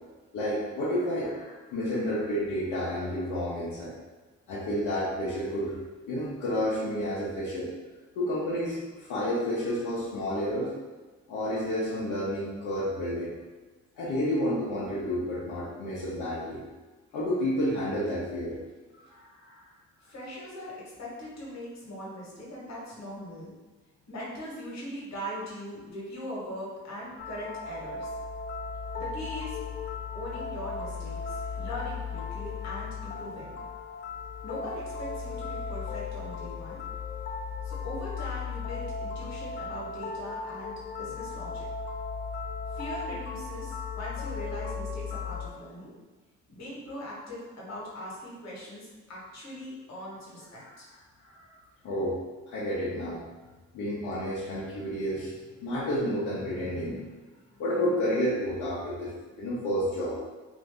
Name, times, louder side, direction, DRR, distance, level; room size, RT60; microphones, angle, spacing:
voice 1, 0.3-4.0 4.5-5.8 6.1-7.7 8.1-10.7 11.3-13.3 13.9-16.6 17.1-18.6 18.9-19.7 50.6-50.7 51.2-51.6 51.8-52.2 52.5-53.2 53.7-55.3 55.6-57.1 57.6-60.2, equal, 80° left, -8 dB, 0.8 m, -30 dB
voice 2, 20.0-23.5 24.1-28.1 29.0-29.6 30.1-33.6 34.4-36.8 37.6-41.7 42.7-45.9 46.5-50.9, equal, 60° left, -5 dB, 1.3 m, -40 dB
sound 1, 27.2-45.5, left 5 dB, 40° left, 0.4 m, -36 dB
2.7 x 2.6 x 3.3 m, 1.3 s
cardioid pair, 90°, 30 cm